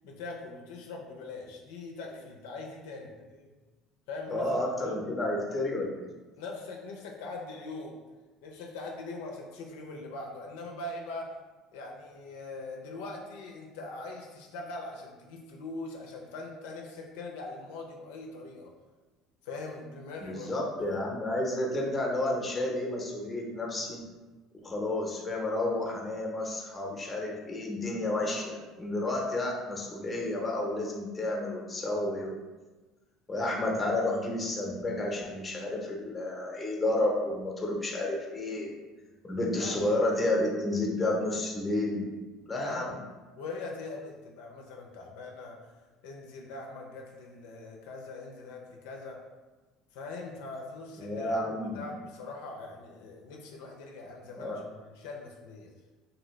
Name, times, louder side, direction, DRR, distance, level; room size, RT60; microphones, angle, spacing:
voice 1, 0.0-3.5 4.1-4.5 4.8-5.0 6.4-8.0 8.4-11.4 11.7-18.7 19.4-21.0 24.6-24.7 28.8-28.9 39.0-39.2 39.5-39.8 42.5-42.9 43.4-45.7 46.0-49.2 49.9-55.7, left 3 dB, 85° left, 0 dB, 0.5 m, -42 dB
voice 2, 4.3-6.1 20.2-24.0 24.6-32.3 33.3-38.7 39.2-42.1 42.5-43.0 51.0-51.8 54.4-54.6, left 1 dB, 20° left, -1 dB, 0.7 m, -31 dB
2.7 x 2.6 x 3.1 m, 1.2 s
supercardioid pair, 100°, 0 cm